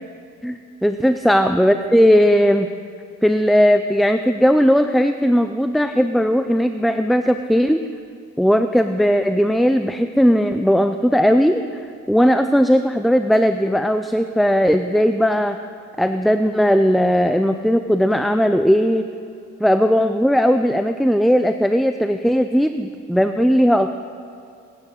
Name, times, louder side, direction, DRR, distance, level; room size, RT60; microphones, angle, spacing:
voice 1, 0.4-2.7 3.2-7.8 8.4-11.8 12.1-15.6 16.0-19.1 19.6-24.0, equal, ahead, 8 dB, 0.4 m, -17 dB
18.5 x 11.0 x 6.6 m, 2.4 s
cardioid pair, 120°, 30 cm